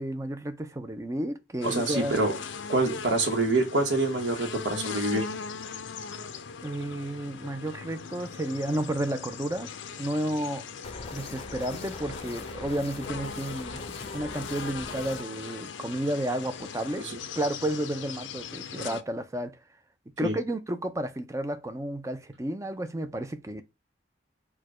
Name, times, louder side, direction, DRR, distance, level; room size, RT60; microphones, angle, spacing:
voice 1, 0.0-2.1 6.6-9.7 10.0-10.7 11.1-13.8 14.1-17.1 17.4-19.6 20.2-23.6, right 1 dB, 15° right, 0.5 m, -32 dB
sound 1, 1.6-19.0, left 5 dB, 80° left, 0.5 m, -40 dB
voice 2, 1.6-2.4 2.7-5.2 17.0-17.2 20.2-20.3, right 2 dB, 70° right, 1.1 m, -26 dB
sound 2, 10.8-15.2, left 3 dB, 30° left, 0.6 m, -41 dB
4.6 x 2.2 x 4.8 m
head